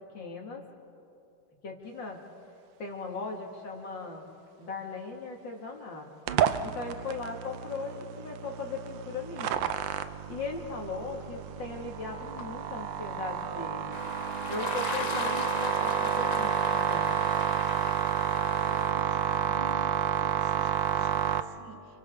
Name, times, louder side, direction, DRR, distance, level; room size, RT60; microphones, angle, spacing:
voice 1, 0.1-0.6 1.6-2.2 2.8-4.3 4.6-6.1 6.6-9.7 10.2-14.0 14.5-17.2, left 4 dB, 80° left, 0 dB, 3.1 m, -38 dB
sound 1, 6.3-21.4, right 9 dB, 90° right, 1.5 m, -30 dB
sound 2, 13.9-18.9, left 4 dB, 65° left, 0.4 m, -38 dB
voice 2, 18.6-22.0, right 4 dB, 75° right, 4 dB, 2.1 m, -48 dB
29.5 x 29.0 x 3.8 m, 2.7 s
omnidirectional pair, 2.0 m